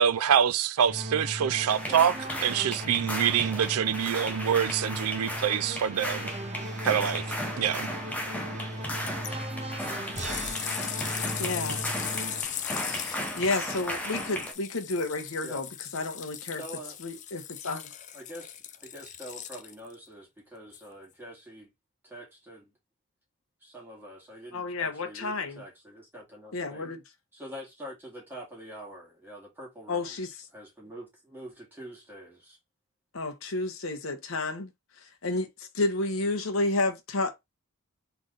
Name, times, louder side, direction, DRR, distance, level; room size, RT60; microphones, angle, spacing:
voice 1, 0.0-2.2 2.4-6.3 6.8-7.2 7.6-7.9, right 8 dB, 85° right, 0.4 m, -25 dB
sound 1, 0.9-12.4, right 1 dB, 30° right, 1.2 m, -37 dB
sound 2, 1.7-14.5, equal, 5° left, 0.9 m, -36 dB
sound 3, 9.1-9.3 9.8-19.9 20.7-20.8, left 10 dB, 35° left, 0.4 m, -38 dB
voice 2, 11.4-11.8 12.9-16.6 17.0-17.8 24.5-25.6 26.5-27.0 29.9-30.3 33.1-34.7 35.2-37.4, left 2 dB, 65° left, 1.0 m, -31 dB
voice 3, 16.4-17.0 18.1-21.7 22.0-22.7 23.6-26.9 27.3-30.2 30.5-32.6, equal, 10° right, 2.1 m, -45 dB
3.9 x 3.3 x 3.8 m
head